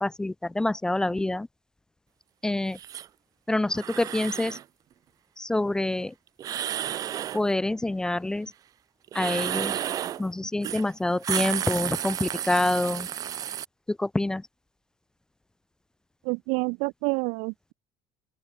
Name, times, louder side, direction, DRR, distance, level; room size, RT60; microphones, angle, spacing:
voice 1, 0.0-1.5 2.4-2.8 3.5-4.6 5.4-6.1 7.3-8.5 9.1-9.8 10.2-13.1 13.9-14.5, left 2 dB, 5° left, 0.6 m, -27 dB
sound 1, 2.7-3.1 3.7-4.6 6.4-7.4 9.1-10.2 10.6-10.8 11.1-13.6, right 10 dB, 30° right, 0.7 m, -32 dB
voice 2, 16.2-17.7, right 33 dB, 70° right, 0.7 m, -28 dB
open air
cardioid pair, 175°, 12 cm